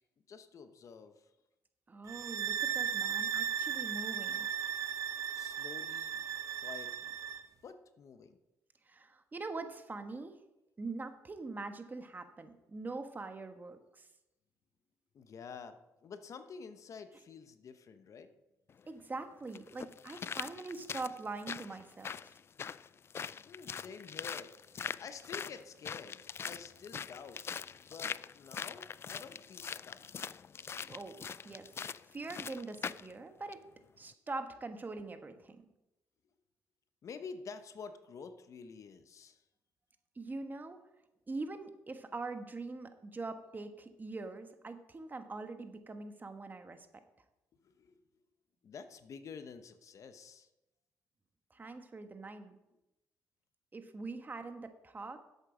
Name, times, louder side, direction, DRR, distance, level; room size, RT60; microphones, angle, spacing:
voice 1, 0.3-1.3 5.3-6.2 6.6-7.1 7.6-8.4 15.1-18.3 22.9-23.0 23.5-27.4 27.9-30.0 37.0-39.4 47.6-48.0 48.6-50.5, left 5 dB, 55° left, 10 dB, 1.0 m, -49 dB
voice 2, 1.9-4.6 8.9-10.4 10.8-14.1 18.9-22.3 30.9-33.6 34.0-35.6 40.2-40.8 41.3-46.9 51.5-52.6 53.7-55.2, right 3 dB, 30° right, 8 dB, 1.3 m, -43 dB
sound 1, 2.1-7.5, right 9 dB, 60° right, 0.7 m, -36 dB
sound 2, 18.7-18.8 19.5-33.1 33.5-33.6, left 7 dB, 40° left, 0.3 m, -43 dB
11.0 x 8.1 x 5.0 m, 0.95 s
supercardioid pair, 70°, 6 cm